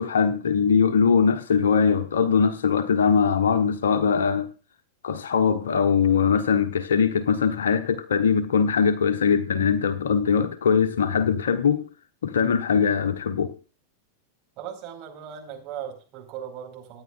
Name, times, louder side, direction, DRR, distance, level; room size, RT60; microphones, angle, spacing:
voice 1, 0.0-4.5 5.0-11.9 12.2-13.5, left 6 dB, 65° left, 1.1 m, -21 dB
voice 2, 14.6-17.0, right 9 dB, 40° right, 4.5 m, -38 dB
25.0 x 9.8 x 2.4 m
figure-of-eight pair, 90°, 0 cm